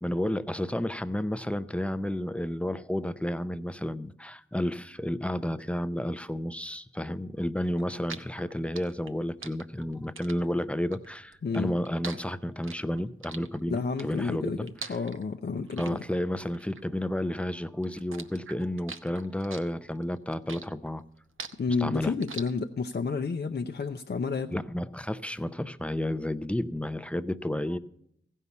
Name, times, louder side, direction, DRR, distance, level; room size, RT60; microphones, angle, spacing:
voice 1, 0.0-14.7 15.8-21.0 21.8-22.1 24.5-27.8, left 1 dB, 5° left, 12 dB, 0.5 m, -31 dB
sound 1, 7.7-17.5 17.8-23.0, right 5 dB, 75° right, 0.8 m, -44 dB
voice 2, 13.7-16.0 21.6-24.6, left 4 dB, 55° left, 6 dB, 0.6 m, -30 dB
15.5 x 5.5 x 8.2 m, 0.73 s
wide cardioid pair, 70°, 21 cm